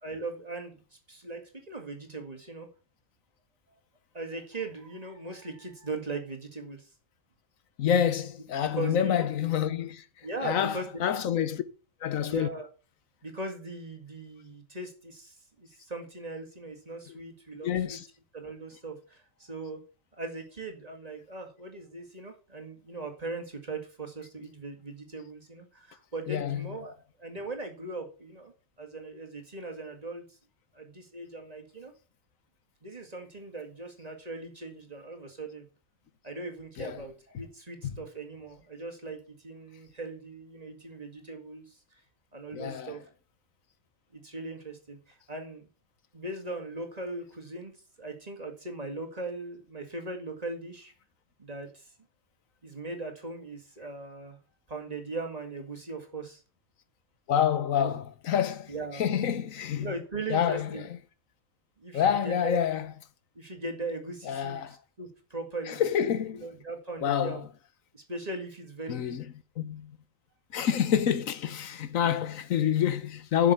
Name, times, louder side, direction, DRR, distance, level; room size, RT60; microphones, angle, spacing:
voice 1, 0.0-0.8 1.1-2.7 4.1-6.9 8.7-9.3 10.2-11.0 12.3-12.7 13.2-18.0 18.3-19.8 20.2-30.4 30.7-31.9 32.8-35.7 36.2-41.8 42.3-43.0 44.1-45.7 46.1-50.9 51.4-51.9 52.6-54.4 54.7-56.4 57.7-57.9 58.7-59.0 59.3-59.4 59.8-60.9 61.8-62.6 63.4-67.4 67.9-69.2, right 2 dB, 30° right, 2.1 m, -39 dB
voice 2, 7.8-10.0 10.4-11.6 12.0-12.5 17.6-18.0 26.3-26.7 36.8-37.0 37.8-37.9 42.5-42.9 57.3-58.7 59.0-59.9 60.3-60.8 61.9-62.9 64.3-64.8 65.7-66.4 67.0-67.4 68.9-69.2 69.6-69.9 70.5-73.5, left 9 dB, 80° left, 1.3 m, -27 dB
7.3 x 6.7 x 8.0 m
omnidirectional pair, 1.4 m